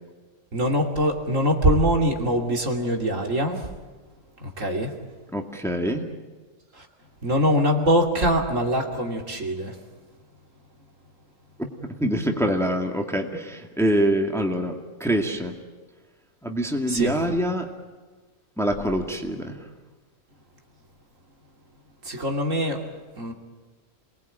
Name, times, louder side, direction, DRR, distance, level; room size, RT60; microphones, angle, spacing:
voice 1, 0.5-3.7 4.4-4.9 6.7-6.9 7.2-9.8 16.9-17.2 22.0-22.9 23.2-23.3, equal, 60° right, 2 dB, 3.0 m, -23 dB
voice 2, 5.3-6.1 12.0-15.5 16.4-17.7 18.6-19.6, equal, ahead, 3 dB, 2.0 m, -25 dB
28.0 x 20.0 x 8.9 m, 1.3 s
omnidirectional pair, 1.5 m